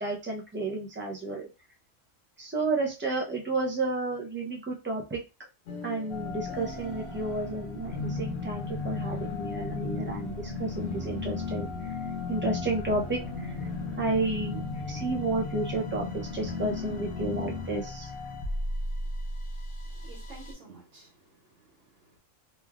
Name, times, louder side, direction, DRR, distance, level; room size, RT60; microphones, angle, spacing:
voice 1, 0.0-1.5 2.4-5.2 5.8-11.9 12.3-13.5 14.0-18.1, right 2 dB, 15° right, 0 dB, 0.5 m, -31 dB
sound 1, 5.7-17.8, left 4 dB, 65° left, 0.8 m, -36 dB
sound 2, 6.1-20.5, left 1 dB, 40° left, 0.4 m, -39 dB
voice 2, 19.9-22.2, right 3 dB, 80° right, -4 dB, 1.5 m, -52 dB
3.1 x 2.6 x 2.3 m, 0.27 s
omnidirectional pair, 1.3 m